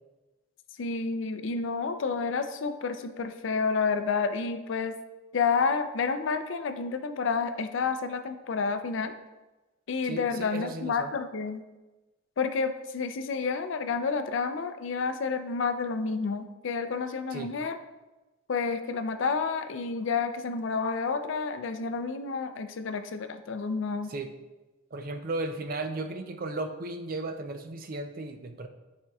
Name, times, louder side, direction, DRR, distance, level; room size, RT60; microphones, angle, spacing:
voice 1, 0.8-5.0 5.3-9.1 9.9-11.6 12.4-17.8 18.5-24.1, left 5 dB, 70° left, 9 dB, 0.4 m, -30 dB
voice 2, 10.0-11.1 17.3-17.5 24.1-24.3 24.9-28.7, right 2 dB, 45° right, 7 dB, 0.5 m, -35 dB
9.4 x 4.4 x 2.3 m, 1.1 s
head